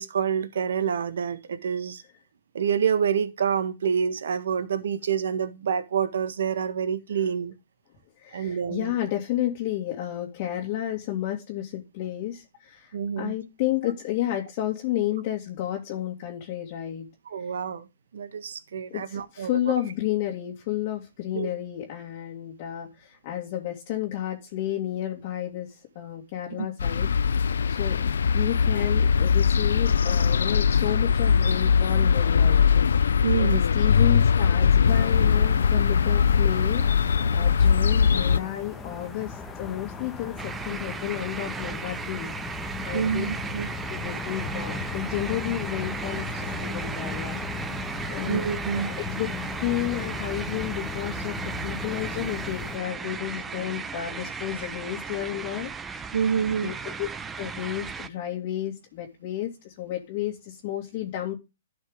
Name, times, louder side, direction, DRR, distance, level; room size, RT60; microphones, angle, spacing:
voice 1, 0.0-2.0 2.5-7.5 8.3-8.9 12.9-13.3 17.3-17.9 18.1-19.5 21.3-21.5 26.6-26.7 33.2-33.6 42.9-43.7 48.3-49.1 56.1-56.7, right 7 dB, 75° right, 1.5 m, -27 dB
voice 2, 8.2-17.1 17.4-17.5 18.9-27.1 27.7-32.7 33.4-43.3 43.9-47.4 48.1-48.4 48.7-49.3 49.6-56.1 56.5-57.1 57.4-61.3, left 13 dB, 45° left, 2.4 m, -32 dB
sound 1, 26.8-38.4, left 6 dB, 80° left, 0.5 m, -21 dB
sound 2, 34.8-52.8, left 4 dB, 15° left, 1.5 m, -37 dB
sound 3, 40.4-58.1, right 5 dB, 15° right, 0.9 m, -36 dB
12.0 x 5.5 x 3.7 m
hypercardioid pair, 130°, 0 cm